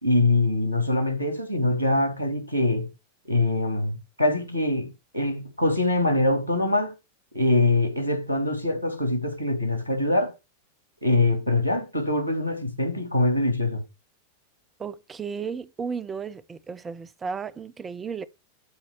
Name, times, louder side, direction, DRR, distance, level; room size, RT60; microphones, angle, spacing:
voice 1, 0.0-2.9 3.3-6.9 7.3-10.3 11.0-13.8, left 2 dB, 85° right, 2.8 m, -24 dB
voice 2, 14.8-18.2, right 6 dB, 20° right, 0.9 m, -34 dB
12.0 x 4.3 x 4.7 m
figure-of-eight pair, 90°, 0 cm